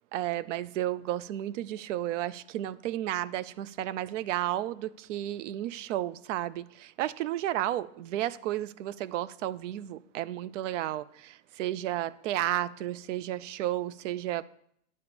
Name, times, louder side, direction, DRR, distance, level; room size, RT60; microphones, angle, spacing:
voice 1, 0.1-14.4, right 13 dB, 80° right, 0.5 m, -32 dB
9.6 x 4.3 x 7.0 m
supercardioid pair, 160°, 36 cm